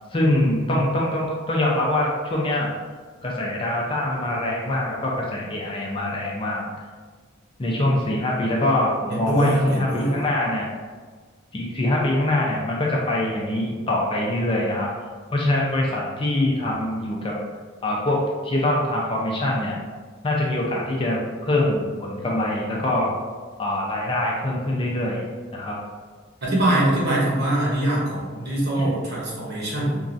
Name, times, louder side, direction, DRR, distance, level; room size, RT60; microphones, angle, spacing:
voice 1, 0.1-2.7 3.2-6.6 7.6-10.7 11.5-14.9 15.3-17.4 17.8-19.8 20.2-23.1 23.6-25.3 25.5-25.8 28.8-28.9, left 1 dB, 25° left, -3 dB, 0.4 m, -24 dB
voice 2, 9.1-10.1 26.4-30.0, right 1 dB, 55° right, -5 dB, 0.9 m, -23 dB
3.0 x 2.5 x 2.5 m, 1.5 s
head